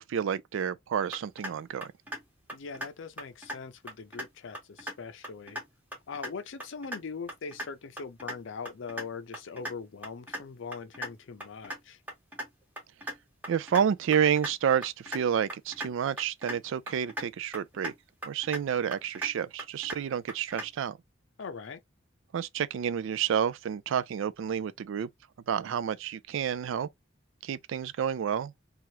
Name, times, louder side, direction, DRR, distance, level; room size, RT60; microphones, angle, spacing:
voice 1, 0.0-1.9 13.5-17.9 18.2-21.0 22.3-25.1 25.5-26.9 27.4-28.5, right 8 dB, 70° right, 0.3 m, -29 dB
sound 1, 1.1-1.5 1.8-2.2 2.5-2.9 3.2-3.6 3.9-4.3 4.5-5.0 5.2-5.6 5.9-6.3 6.6-7.0 7.3-7.7 8.0-8.3 8.6-9.0 9.3-9.7 10.0-10.4 10.7-11.1 11.4-11.8 12.1-12.5 12.8-13.1 13.4-13.8 14.1-14.5 14.8-15.2 15.5-15.9 16.2-16.6 16.9-17.3 17.5-17.9 18.2-18.6 18.9-19.3 19.6-20.0 20.3-20.7, equal, 10° right, 1.1 m, -37 dB
voice 2, 2.5-5.6 6.1-12.0 21.4-21.8, left 5 dB, 65° left, 0.5 m, -41 dB
2.8 x 2.4 x 3.1 m
head